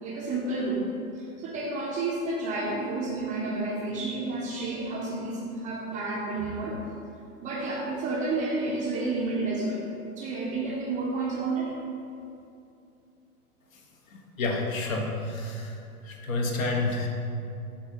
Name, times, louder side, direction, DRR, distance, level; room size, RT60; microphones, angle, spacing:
voice 1, 0.0-0.8 1.1-6.8 7.4-9.8 10.2-11.8, right 3 dB, 15° right, -4 dB, 0.6 m, -30 dB
voice 2, 14.1-15.8 16.0-17.1, left 2 dB, 60° left, 1 dB, 1.1 m, -29 dB
6.7 x 2.7 x 5.6 m, 2.6 s
figure-of-eight pair, 105°, 46 cm